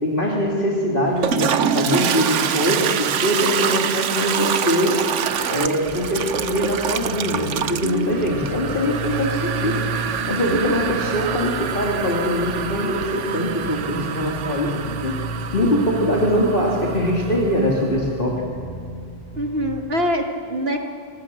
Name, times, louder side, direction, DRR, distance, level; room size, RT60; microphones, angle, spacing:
voice 1, 0.0-5.0 5.5-9.8 10.3-14.7 15.0-15.1 15.5-18.4, equal, 45° left, -3 dB, 3.2 m, -22 dB
Toilet flush, 1.1-17.8, right 8 dB, 85° right, 1.1 m, -26 dB
sound 1, 5.9-19.9, right 1 dB, 85° left, 7.9 m, -34 dB
voice 2, 7.8-8.4 10.5-10.9 19.4-20.8, equal, 55° right, 3 dB, 2.4 m, -25 dB
27.5 x 20.0 x 7.2 m, 2.3 s
omnidirectional pair, 1.2 m